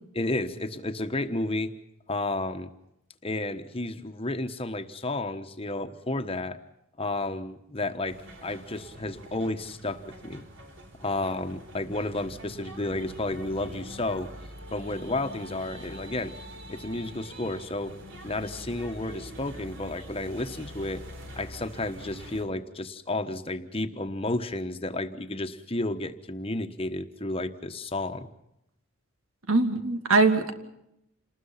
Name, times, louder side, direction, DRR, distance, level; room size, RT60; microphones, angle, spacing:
voice 1, 0.1-1.7 2.1-2.7 3.2-6.6 7.0-10.4 11.0-14.3 14.7-16.3 16.7-17.9 18.2-21.0 21.3-28.3, left 2 dB, 25° left, 8 dB, 1.2 m, -32 dB
sound 1, 8.1-22.4, equal, 60° right, 4.2 m, -44 dB
voice 2, 29.5-30.5, right 3 dB, 85° right, 7 dB, 2.6 m, -22 dB
28.5 x 20.0 x 5.8 m, 0.81 s
head